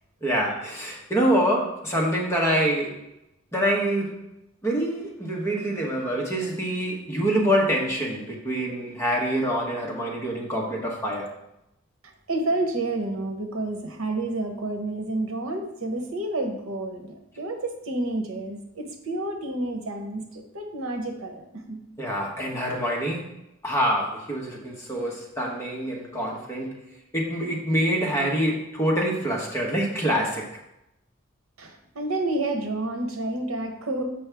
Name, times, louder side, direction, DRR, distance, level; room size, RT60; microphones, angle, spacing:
voice 1, 0.2-3.0 3.5-4.2 4.6-11.3 22.0-23.3 23.6-26.8 27.1-30.6, equal, 15° left, -2 dB, 1.1 m, -26 dB
voice 2, 12.0-21.8 31.6-34.0, right 2 dB, 85° right, 5 dB, 1.0 m, -30 dB
7.3 x 5.2 x 3.4 m, 0.86 s
head